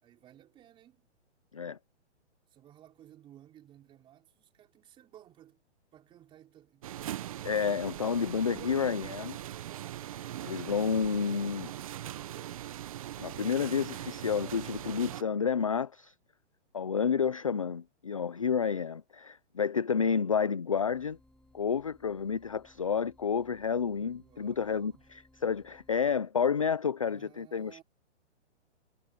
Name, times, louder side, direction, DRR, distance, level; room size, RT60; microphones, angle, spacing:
voice 1, 0.0-1.0 2.5-5.6 5.9-7.5 24.1-25.1 27.0-27.8, right 12 dB, 15° right, 4.7 m, -57 dB
sound 1, 6.8-15.2, right 12 dB, 30° right, 0.9 m, -40 dB
voice 2, 7.4-9.4 10.4-11.7 13.2-16.1 16.7-21.2 21.5-27.8, left 6 dB, 30° left, 0.4 m, -30 dB
sound 2, 20.7-26.1, left 1 dB, ahead, 4.5 m, -63 dB
hypercardioid pair, 165°, 35 cm